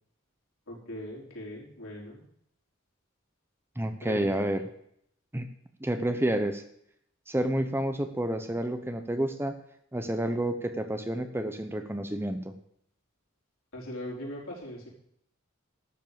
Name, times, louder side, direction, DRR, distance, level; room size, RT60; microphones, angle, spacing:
voice 1, 0.7-2.3 4.0-4.5 13.7-14.9, left 1 dB, 70° left, -3 dB, 4.7 m, -40 dB
voice 2, 3.8-4.6 5.3-5.5 5.8-6.6 7.3-9.6 9.9-12.5, right 1 dB, 10° right, 8 dB, 0.9 m, -29 dB
12.5 x 7.4 x 7.6 m, 0.70 s
head